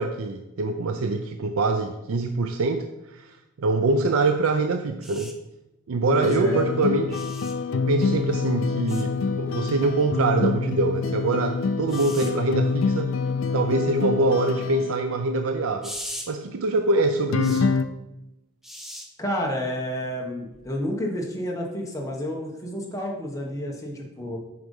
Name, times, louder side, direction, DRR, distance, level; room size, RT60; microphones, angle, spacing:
voice 1, 0.0-5.4 5.9-7.2 7.7-13.2 13.5-16.0 16.3-17.7, right 3 dB, 85° right, 7 dB, 0.5 m, -24 dB
sound 1, 5.0-5.3 7.1-7.5 8.9-9.1 11.9-12.3 15.8-16.3 17.4-17.6 18.6-19.1 20.5-20.7, equal, ahead, 0.6 m, -38 dB
sound 2, 6.1-14.9 17.3-17.8, left 4 dB, 75° left, 0.4 m, -26 dB
voice 2, 6.1-6.6 19.2-24.4, equal, 15° left, -1 dB, 1.2 m, -30 dB
7.7 x 5.1 x 5.4 m, 0.96 s
head